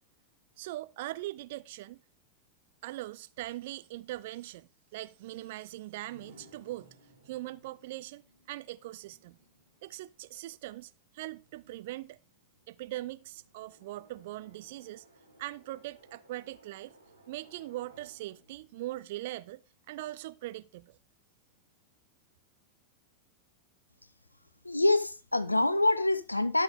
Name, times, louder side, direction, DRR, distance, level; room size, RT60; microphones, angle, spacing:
voice 1, 0.6-2.0 2.8-6.9 7.3-8.2 8.5-9.4 9.8-12.2 12.7-15.0 15.4-17.0 17.3-21.0, right 16 dB, 50° right, 0.4 m, -41 dB
sound 1, 6.0-19.9, right 1 dB, 70° right, 4.0 m, -62 dB
voice 2, 24.6-26.6, left 2 dB, 85° left, 0.6 m, -26 dB
12.5 x 6.5 x 3.5 m
figure-of-eight pair, 90°, 0 cm